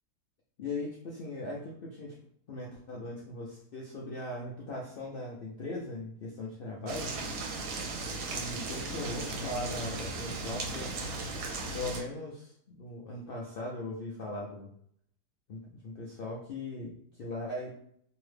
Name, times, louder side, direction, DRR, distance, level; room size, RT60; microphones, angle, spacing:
voice 1, 0.6-2.2 2.5-7.1 8.1-10.9 11.7-14.7 15.5-17.7, left 2 dB, 75° left, -3 dB, 0.5 m, -39 dB
sound 1, 6.9-12.0, right 3 dB, 90° right, 1.2 m, -36 dB
2.9 x 2.7 x 3.2 m, 0.66 s
omnidirectional pair, 1.7 m